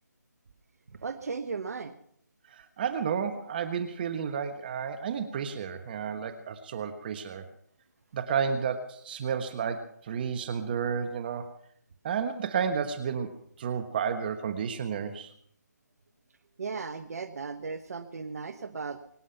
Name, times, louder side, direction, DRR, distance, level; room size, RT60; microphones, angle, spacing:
voice 1, 1.0-1.9 16.6-19.0, right 4 dB, 55° right, 10 dB, 1.2 m, -36 dB
voice 2, 2.5-7.4 8.1-11.5 12.0-15.3, right 7 dB, 30° right, 9 dB, 1.3 m, -31 dB
24.0 x 9.7 x 5.8 m, 0.68 s
figure-of-eight pair, 155°, 10 cm